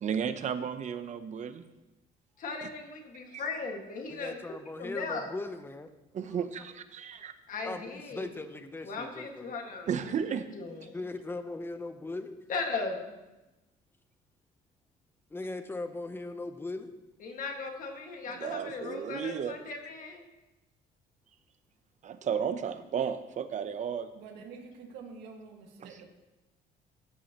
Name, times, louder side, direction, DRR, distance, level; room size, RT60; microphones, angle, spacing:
voice 1, 0.0-1.6 2.6-2.7 3.3-3.4 6.1-7.3 9.9-10.4 18.3-19.6 22.0-24.1 25.8-26.0, right 7 dB, 45° right, 11 dB, 0.8 m, -33 dB
voice 2, 2.4-4.4 4.8-5.3 7.5-8.3 8.8-10.9 12.5-13.1 17.2-20.2, left 4 dB, 50° left, 2 dB, 1.9 m, -37 dB
voice 3, 4.1-5.9 6.3-6.5 7.6-9.5 10.9-12.4 15.3-16.9, left 2 dB, 15° left, 9 dB, 0.8 m, -39 dB
voice 4, 24.1-26.1, right 5 dB, 90° right, 1 dB, 1.8 m, -47 dB
15.0 x 7.2 x 3.0 m, 1.0 s
cardioid pair, 110°, 17 cm